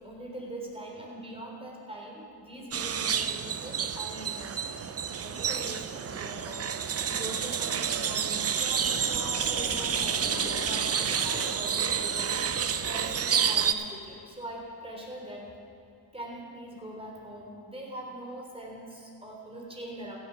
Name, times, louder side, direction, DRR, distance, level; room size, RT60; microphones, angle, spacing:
voice 1, 0.0-4.7 5.2-6.7 7.0-12.5 12.8-15.5 16.1-20.2, right 1 dB, 15° right, -1 dB, 3.3 m, -42 dB
sound 1, 2.7-13.7, right 7 dB, 35° right, 0.6 m, -29 dB
sound 2, 8.8-14.3, left 3 dB, 30° left, 1.4 m, -42 dB
15.5 x 7.2 x 6.2 m, 2.4 s
cardioid pair, 65°, 43 cm